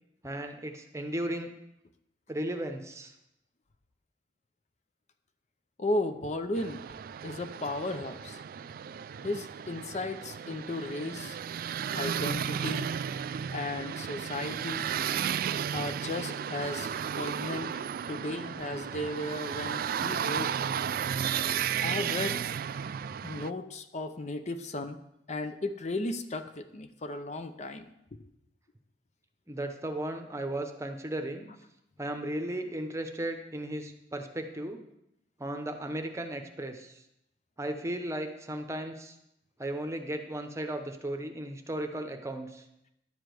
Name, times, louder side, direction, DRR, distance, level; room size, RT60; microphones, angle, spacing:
voice 1, 0.2-1.5 2.3-3.1 29.5-31.5 32.0-34.8 35.4-36.9 37.6-39.1 39.6-42.6, right 1 dB, 15° right, 5 dB, 0.9 m, -35 dB
voice 2, 5.8-6.8 7.2-8.4 9.2-11.4 11.9-12.9 13.5-14.9 15.7-17.7 18.1-20.8 21.8-22.4 23.2-25.0 25.3-27.9, left 2 dB, 40° left, 8 dB, 0.6 m, -35 dB
sound 1, 6.5-23.5, right 8 dB, 55° right, 0.3 m, -34 dB
11.0 x 5.1 x 7.7 m, 0.84 s
head